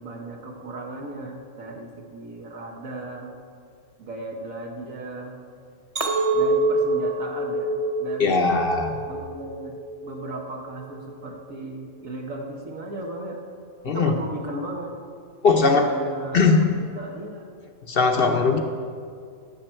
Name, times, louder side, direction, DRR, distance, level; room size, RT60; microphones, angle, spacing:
voice 1, 0.0-3.3 4.0-5.4 6.3-8.6 9.1-9.8 10.0-13.4 13.8-14.9 15.6-17.5, right 2 dB, 75° right, 0 dB, 1.4 m, -36 dB
Chink clink, 6.0-10.3 10.8-11.2, right 2 dB, 30° right, 1.0 m, -26 dB
voice 2, 8.2-8.9 13.8-14.1 15.4-15.9 16.3-16.7 17.9-18.6, left 4 dB, 50° left, 5 dB, 0.8 m, -19 dB
16.0 x 7.3 x 4.4 m, 2.3 s
omnidirectional pair, 1.5 m